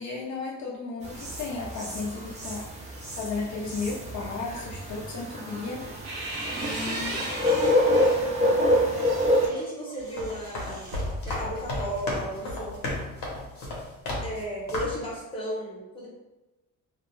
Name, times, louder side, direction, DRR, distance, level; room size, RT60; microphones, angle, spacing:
voice 1, 0.0-2.9 3.2-5.8 6.6-7.3 8.4-8.8, left 4 dB, 55° left, -4 dB, 0.5 m, -34 dB
sound 1, 1.0-9.5, left 1 dB, 20° right, 0.4 m, -27 dB
sound 2, 5.6-8.3 8.8-12.1, right 1 dB, 85° right, 0.7 m, -37 dB
voice 2, 6.4-7.3 9.4-11.0 11.2-12.8 14.2-16.1, equal, 15° left, -6 dB, 0.8 m, -35 dB
sound 3, 10.0-14.4 14.7-15.1, left 1 dB, 85° left, 0.9 m, -34 dB
2.3 x 2.1 x 3.0 m, 1.1 s
cardioid pair, 170°, 34 cm